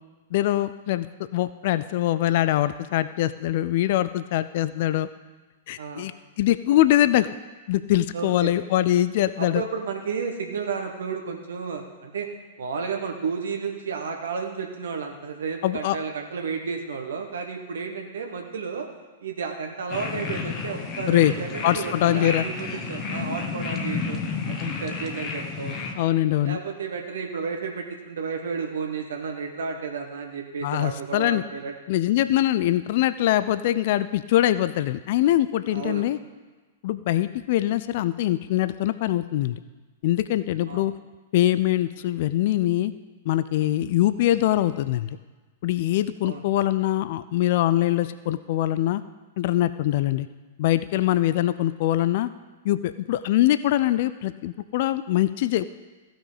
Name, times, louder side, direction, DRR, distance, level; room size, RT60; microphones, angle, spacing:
voice 1, 0.3-1.1 1.3-5.1 5.7-6.1 6.4-7.3 7.7-9.6 15.6-16.0 21.1-21.3 21.6-22.5 24.6-24.7 26.0-26.6 30.6-31.4 31.9-36.2 36.8-39.6 40.0-40.9 41.3-42.9 43.3-45.2 45.6-49.0 49.4-50.3 50.6-52.3 52.6-55.7, left 14 dB, 50° left, 14 dB, 0.4 m, -23 dB
voice 2, 5.8-6.1 8.1-8.5 9.4-12.3 12.6-18.9 19.2-25.8 26.4-31.7 35.7-36.0 40.7-40.9 46.2-46.4, right 5 dB, 65° right, 3 dB, 1.2 m, -32 dB
sound 1, 19.9-25.9, left 4 dB, 30° left, 1.3 m, -31 dB
15.0 x 6.1 x 5.0 m, 1.3 s
figure-of-eight pair, 105°, 0 cm